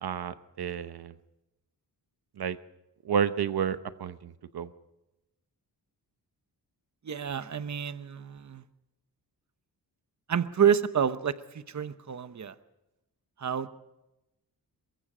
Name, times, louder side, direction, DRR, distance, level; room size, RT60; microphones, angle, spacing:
voice 1, 0.0-1.1 2.4-2.6 3.0-4.7, right 7 dB, 70° right, 11 dB, 0.9 m, -31 dB
voice 2, 7.0-8.6 10.3-12.5 13.4-13.7, right 8 dB, 45° right, 12 dB, 1.0 m, -28 dB
23.0 x 22.5 x 5.0 m, 0.95 s
wide cardioid pair, 100°, 39 cm